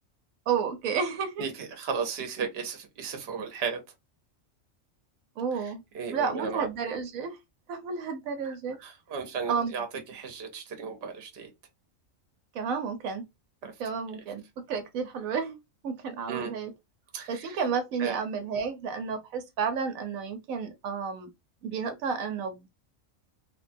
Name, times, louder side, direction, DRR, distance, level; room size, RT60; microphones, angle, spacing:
voice 1, 0.5-1.4 5.4-5.8 6.1-7.4 7.7-8.8 9.5-9.7 12.5-13.2 13.8-14.4 14.7-15.6 15.8-16.7 17.3-21.3 21.6-22.7, right 6 dB, 80° right, 1.0 m, -31 dB
voice 2, 1.4-3.8 5.5-6.7 8.5-11.5 13.6-13.7 16.3-16.5 17.1-17.6 18.0-18.2, right 6 dB, 55° right, 0.9 m, -35 dB
3.0 x 2.2 x 2.5 m
omnidirectional pair, 1.4 m